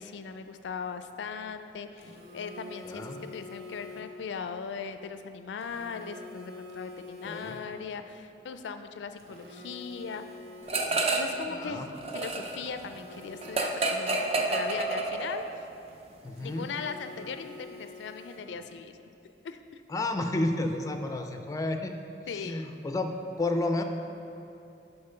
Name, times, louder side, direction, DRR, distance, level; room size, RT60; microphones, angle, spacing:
voice 1, 0.0-10.2 11.1-15.4 16.4-18.9 19.4-19.8 22.3-22.7, left 5 dB, 85° left, 9 dB, 0.4 m, -39 dB
Telephone, 2.0-4.3 5.6-8.0 9.2-11.5 12.8-15.1 16.4-18.7, left 2 dB, 60° right, 0.9 m, -47 dB
voice 2, 2.8-3.2 7.2-7.5 11.5-11.9 16.2-16.7 19.9-22.0 22.4-23.8, left 2 dB, 20° left, 5 dB, 0.4 m, -31 dB
sound 1, 10.7-11.4 11.7-15.6, right 3 dB, 35° right, 0.5 m, -29 dB
6.6 x 4.4 x 5.5 m, 2.8 s
head